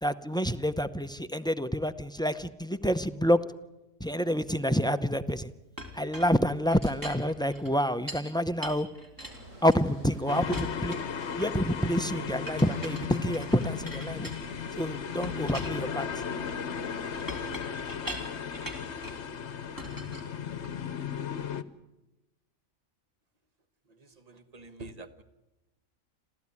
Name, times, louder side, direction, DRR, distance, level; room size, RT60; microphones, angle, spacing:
voice 1, 0.0-3.4 4.0-5.5 5.9-8.9 9.6-11.0 11.4-14.3 14.7-16.1, equal, 5° left, 12 dB, 0.5 m, -28 dB
Chink clink, 5.8-8.3 8.6-10.1 10.5-11.7 12.5-14.8 15.2-19.3 19.8-20.9, equal, 15° right, 3.3 m, -42 dB
Water, 9.2-17.6, right 2 dB, 70° right, 3.8 m, -49 dB
sound 1, 10.3-21.6, left 7 dB, 60° left, 1.2 m, -36 dB
voice 2, 23.9-25.2, right 2 dB, 30° right, 10 dB, 1.4 m, -47 dB
27.0 x 15.5 x 9.7 m, 1.0 s
omnidirectional pair, 1.4 m